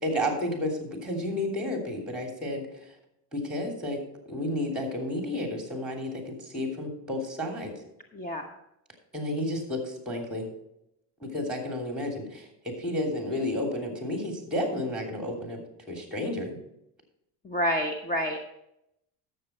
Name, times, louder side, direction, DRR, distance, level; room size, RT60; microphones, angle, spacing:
voice 1, 0.0-2.9 3.3-4.0 4.3-7.7 9.1-10.5 11.2-15.6 15.9-16.6, left 1 dB, ahead, 2 dB, 3.0 m, -31 dB
voice 2, 8.1-8.5 17.4-18.4, equal, 20° left, 4 dB, 1.1 m, -28 dB
12.5 x 7.2 x 4.4 m, 0.81 s
supercardioid pair, 95°, 45 cm